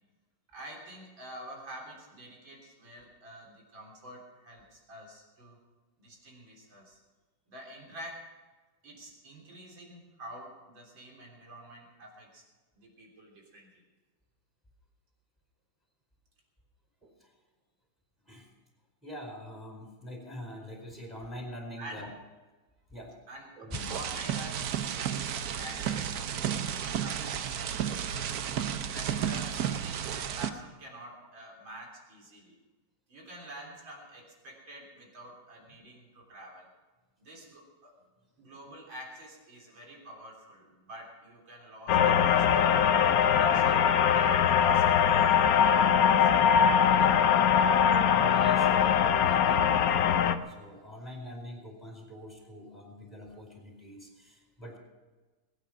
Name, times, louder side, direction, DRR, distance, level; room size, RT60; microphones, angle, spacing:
voice 1, 0.5-5.6 6.0-7.0 7.5-8.3 8.8-12.4 12.7-13.8 21.8-22.0 23.3-23.5 23.9-28.3 28.9-32.6 33.1-36.7 37.2-37.9 38.4-46.3 46.6-47.2, right 1 dB, 75° right, -1 dB, 4.2 m, -48 dB
voice 2, 17.0-17.3 18.2-18.5 19.0-22.1 22.9-23.1 23.6-23.9 24.2-24.4 38.0-38.1 48.0-54.8, equal, ahead, 0 dB, 4.5 m, -44 dB
sound 1, 23.7-30.5, right 9 dB, 60° right, 1.1 m, -32 dB
sound 2, 41.9-50.4, left 8 dB, 60° left, 1.0 m, -22 dB
21.0 x 9.3 x 6.0 m, 1.3 s
omnidirectional pair, 2.1 m